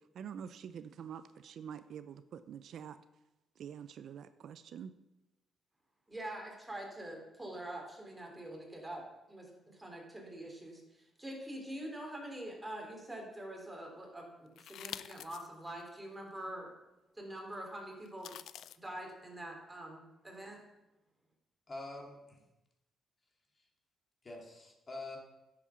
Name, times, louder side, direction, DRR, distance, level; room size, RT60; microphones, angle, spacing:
voice 1, 0.0-3.0 3.6-4.9, right 8 dB, 65° right, 12 dB, 0.4 m, -46 dB
voice 2, 6.1-9.0 9.3-16.7 17.1-18.3 18.8-20.6, right 1 dB, 10° right, 0 dB, 3.4 m, -45 dB
sound 1, 14.6-15.5 16.0-16.1 18.1-18.8, left 10 dB, 75° left, 0.4 m, -46 dB
voice 3, 21.7-22.4 24.2-25.2, left 2 dB, 30° left, 0 dB, 2.6 m, -45 dB
10.0 x 7.4 x 5.8 m, 0.97 s
cardioid pair, 90°, 0 cm